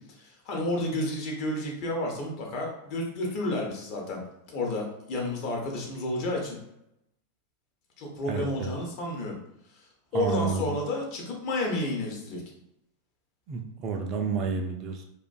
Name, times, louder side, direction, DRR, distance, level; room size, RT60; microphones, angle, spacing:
voice 1, 0.2-4.2 4.5-6.6 8.0-9.4 10.1-12.4, left 1 dB, 40° left, -1 dB, 0.7 m, -31 dB
voice 2, 8.3-8.7 10.1-10.8 13.5-15.0, right 5 dB, 35° right, 3 dB, 0.3 m, -30 dB
2.4 x 2.2 x 2.4 m, 0.83 s
figure-of-eight pair, 90°, 0 cm